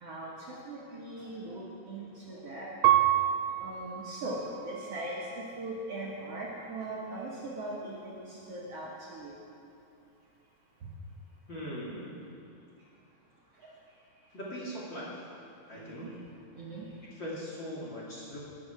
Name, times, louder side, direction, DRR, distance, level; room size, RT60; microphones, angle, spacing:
voice 1, 0.0-2.7 3.6-9.4 13.6-13.7 15.7-16.1 16.6-16.9, right 1 dB, 55° right, -5 dB, 2.2 m, -40 dB
Piano, 2.8-5.6 6.2-6.9, right 12 dB, 80° right, 2.2 m, -29 dB
voice 2, 11.5-12.2 14.3-15.1 15.7-16.1 17.1-18.4, equal, 35° left, -7 dB, 2.9 m, -40 dB
19.0 x 7.6 x 6.2 m, 2.6 s
omnidirectional pair, 4.1 m